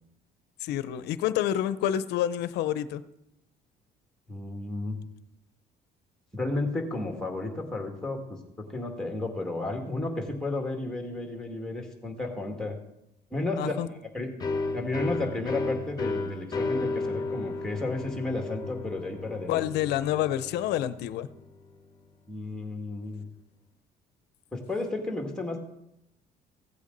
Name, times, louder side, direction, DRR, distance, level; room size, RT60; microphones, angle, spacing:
voice 1, 0.6-3.0 13.6-13.9 19.5-21.3, left 11 dB, 85° left, 14 dB, 0.7 m, -28 dB
voice 2, 4.3-5.0 6.3-12.8 13.3-14.3 14.7-19.7 22.3-23.2 24.5-25.6, left 2 dB, 5° left, 2 dB, 2.2 m, -33 dB
sound 1, 14.4-21.9, left 3 dB, 25° left, 1.3 m, -33 dB
16.0 x 8.3 x 4.0 m, 0.85 s
cardioid pair, 110°, 17 cm